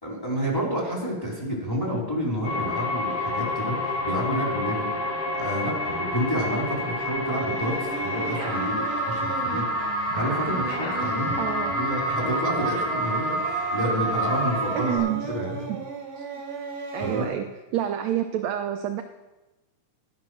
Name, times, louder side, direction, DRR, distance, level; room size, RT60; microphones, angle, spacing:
voice 1, 0.0-4.9 5.3-11.4 11.7-15.6 17.0-17.3, equal, 5° left, -3 dB, 3.2 m, -29 dB
sound 1, 2.4-15.0, equal, 60° left, 5.2 m, -28 dB
Singing, 7.4-17.3, right 4 dB, 35° right, 1.9 m, -36 dB
voice 2, 11.4-11.8 14.8-15.3 15.7-15.8 16.2-16.3 16.9-17.5 17.7-19.0, right 11 dB, 75° right, 6 dB, 1.7 m, -28 dB
12.0 x 11.5 x 6.2 m, 1.1 s
omnidirectional pair, 3.7 m